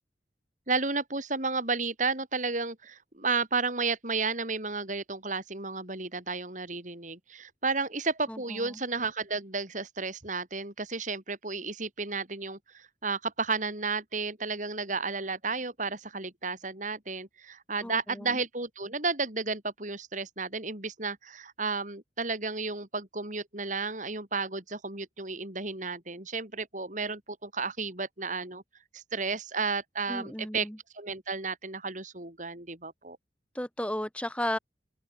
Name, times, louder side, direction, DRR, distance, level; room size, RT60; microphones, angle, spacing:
voice 1, 0.7-28.6 28.9-30.7 30.9-33.2, right 4 dB, 45° right, 4.7 m, -32 dB
voice 2, 8.3-8.7 17.8-18.4 30.1-30.8 33.5-34.6, left 1 dB, 5° left, 5.6 m, -34 dB
open air
head